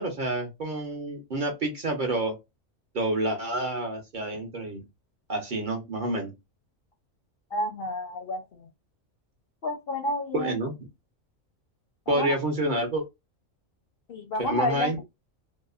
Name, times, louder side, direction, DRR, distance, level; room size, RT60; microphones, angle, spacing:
voice 1, 0.0-2.4 2.9-4.8 5.3-6.3 10.3-10.7 12.1-13.0 14.4-15.0, right 1 dB, 50° right, 0.7 m, -28 dB
voice 2, 7.5-8.7 9.6-10.6 12.1-12.3 14.1-14.9, left 1 dB, 60° left, 0.7 m, -30 dB
2.7 x 2.0 x 2.3 m
omnidirectional pair, 1.3 m